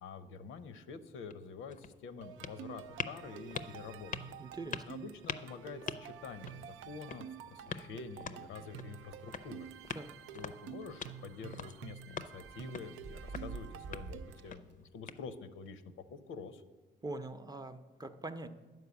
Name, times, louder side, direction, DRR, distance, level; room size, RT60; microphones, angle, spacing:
voice 1, 0.0-4.4 4.9-9.7 10.3-16.6, left 5 dB, 80° left, 11 dB, 0.7 m, -47 dB
sound 1, 1.1-15.7, left 6 dB, 40° left, 0.5 m, -46 dB
sound 2, 2.2-14.5, right 9 dB, 90° right, 0.4 m, -50 dB
voice 2, 4.4-4.8 9.9-10.1 17.0-18.5, right 2 dB, 20° right, 8 dB, 0.6 m, -43 dB
sound 3, 7.8-8.8 9.1-9.2 9.5-9.7 10.9-11.9 12.4-14.7, right 4 dB, 65° right, 0.8 m, -49 dB
9.6 x 4.6 x 7.0 m, 1.3 s
cardioid pair, 90°, 20 cm